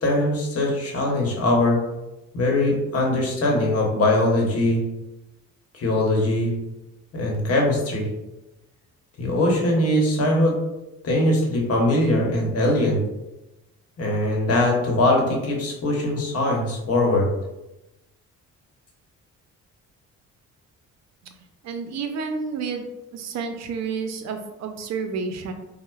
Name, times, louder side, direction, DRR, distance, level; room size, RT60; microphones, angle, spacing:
voice 1, 0.0-1.8 2.3-4.8 5.7-6.5 7.1-8.1 9.2-10.5 11.0-13.0 14.0-17.3, left 1 dB, 50° left, -1 dB, 1.0 m, -21 dB
voice 2, 21.6-22.9 23.1-25.5, right 5 dB, 60° right, 6 dB, 0.5 m, -30 dB
4.2 x 2.0 x 2.3 m, 0.97 s
cardioid pair, 90°, 30 cm